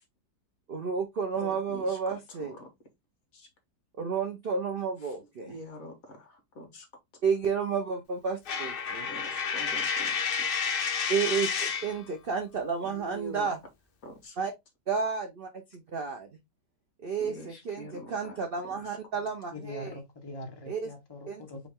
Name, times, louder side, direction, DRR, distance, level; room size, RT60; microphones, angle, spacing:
voice 1, 0.7-2.6 4.0-5.6 7.2-9.1 11.1-13.6 14.4-14.5 14.9-16.3 17.0-19.9 20.7-20.9 21.3-21.5, right 5 dB, 65° right, 0.5 m, -31 dB
voice 2, 1.3-2.0 2.6-2.7 3.3-3.5 5.4-6.9 9.1-10.2 10.5-10.7 12.8-13.5 14.0-14.4 17.2-18.4 18.6-18.7, equal, 55° left, 1.6 m, -44 dB
Coin (dropping), 8.5-12.0, left 6 dB, 80° left, 0.4 m, -30 dB
voice 3, 19.5-21.7, left 2 dB, 20° left, 0.8 m, -42 dB
4.9 x 2.6 x 3.5 m
omnidirectional pair, 1.9 m